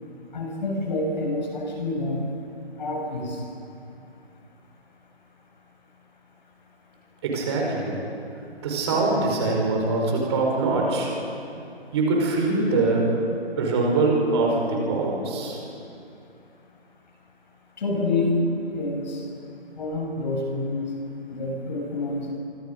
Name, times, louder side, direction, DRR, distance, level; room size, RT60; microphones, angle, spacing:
voice 1, 0.3-2.2 2.8-3.4 17.8-18.3 18.7-19.2 19.8-20.9 21.3-22.3, left 2 dB, 45° left, 0 dB, 7.0 m, -27 dB
voice 2, 7.2-7.9 8.6-11.1 11.9-13.2 13.5-15.6, right 3 dB, 25° right, -1 dB, 5.0 m, -23 dB
29.0 x 25.5 x 5.4 m, 2.6 s
hypercardioid pair, 160°, 31 cm